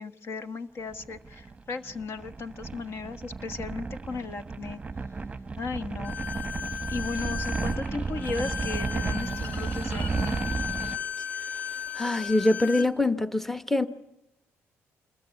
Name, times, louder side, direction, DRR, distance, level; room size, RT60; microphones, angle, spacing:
voice 1, 0.0-4.8 5.6-6.2 6.9-10.4, left 4 dB, 50° left, 1.3 m, -36 dB
sound 1, 0.9-11.0, right 4 dB, 20° right, 0.9 m, -33 dB
Bowed string instrument, 6.0-12.9, left 7 dB, 25° left, 1.2 m, -36 dB
voice 2, 11.9-13.9, left 2 dB, 5° left, 1.0 m, -24 dB
27.5 x 21.0 x 9.2 m
cardioid pair, 120°, 5 cm